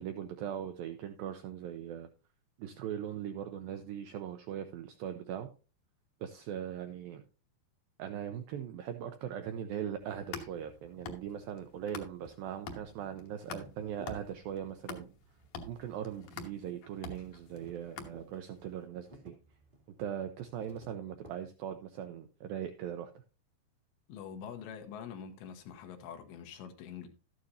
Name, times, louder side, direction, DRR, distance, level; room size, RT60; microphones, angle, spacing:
voice 1, 0.0-2.1 2.6-5.5 6.2-7.2 8.0-15.1 15.7-19.3 20.0-23.2, right 9 dB, 90° right, 2.0 m, -40 dB
sound 1, 10.0-12.4 12.7-18.6, left 4 dB, 65° left, 2.0 m, -46 dB
sound 2, 10.6-21.3, right 1 dB, 65° right, 0.5 m, -59 dB
voice 2, 24.1-27.1, left 7 dB, 85° left, 3.4 m, -45 dB
12.5 x 9.2 x 2.8 m
omnidirectional pair, 5.0 m